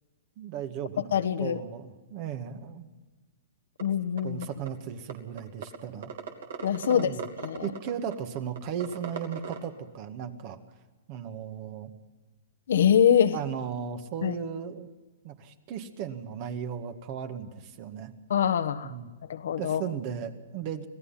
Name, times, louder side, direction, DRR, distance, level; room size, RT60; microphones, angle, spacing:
voice 1, 0.4-2.9 4.2-6.1 6.8-7.2 7.6-10.6 11.1-11.9 13.3-14.9 15.2-18.1 18.8-19.1 19.6-20.9, right 8 dB, 45° right, 8 dB, 1.9 m, -36 dB
voice 2, 1.1-1.6 3.8-4.5 6.6-7.1 7.4-7.7 12.7-13.4 14.2-14.3 18.3-18.9 19.3-19.8, left 9 dB, 70° left, 10 dB, 1.2 m, -24 dB
sound 1, 3.8-3.9 4.2-4.7 5.1-5.2 5.4-5.8 6.0-9.6, right 6 dB, 70° right, 2.9 m, -37 dB
26.0 x 17.5 x 5.8 m, 1.3 s
hypercardioid pair, 120°, 0 cm